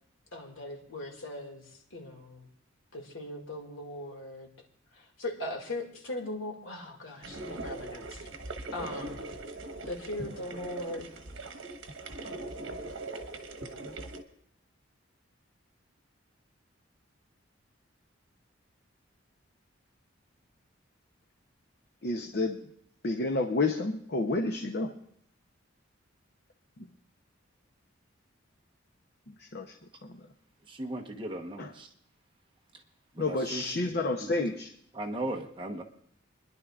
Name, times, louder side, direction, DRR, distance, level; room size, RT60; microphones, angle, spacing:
voice 1, 0.3-2.5 2.9-4.5 4.9-8.3 8.7-9.2 9.9-11.1, left 1 dB, 80° left, 1 dB, 2.3 m, -39 dB
sound 1, 7.2-14.2, right 2 dB, 75° right, 1.2 m, -40 dB
voice 2, 22.0-22.6 23.0-24.9 29.3-29.7 30.0-30.2 31.6-31.7 33.2-34.7, left 2 dB, 50° left, 4 dB, 0.8 m, -30 dB
voice 3, 30.7-31.9 33.1-33.8 34.2-34.3 34.9-35.8, right 1 dB, 25° right, 2 dB, 1.0 m, -37 dB
29.5 x 11.0 x 2.4 m, 0.69 s
head